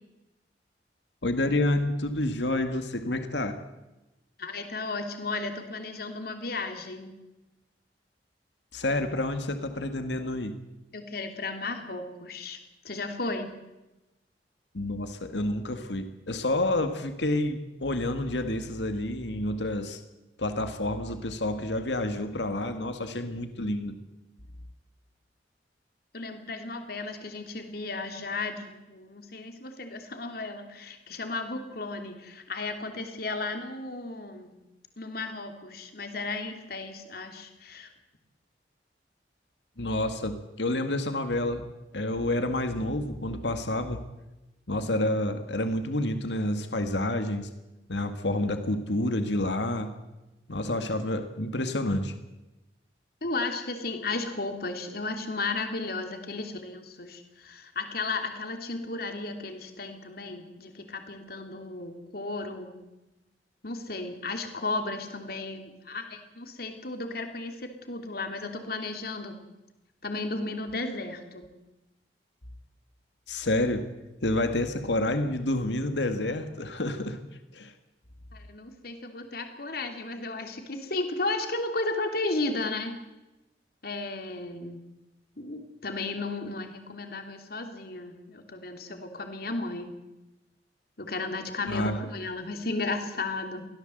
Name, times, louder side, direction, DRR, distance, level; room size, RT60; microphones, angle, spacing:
voice 1, 1.2-3.6 8.7-10.5 14.7-20.0 20.4-23.9 39.8-41.7 41.9-44.0 44.7-47.5 47.9-49.9 50.5-52.1 73.3-73.8 74.2-77.2 77.5-77.7 91.7-92.0, left 1 dB, 80° left, 8 dB, 2.0 m, -29 dB
voice 2, 4.4-7.1 10.9-12.6 12.8-13.5 26.1-34.6 35.0-37.9 53.2-62.8 63.6-69.4 70.0-71.5 78.3-83.0 83.8-84.8 85.4-90.0 91.0-93.7, left 3 dB, 60° left, 5 dB, 3.1 m, -34 dB
23.5 x 16.5 x 8.0 m, 1.0 s
head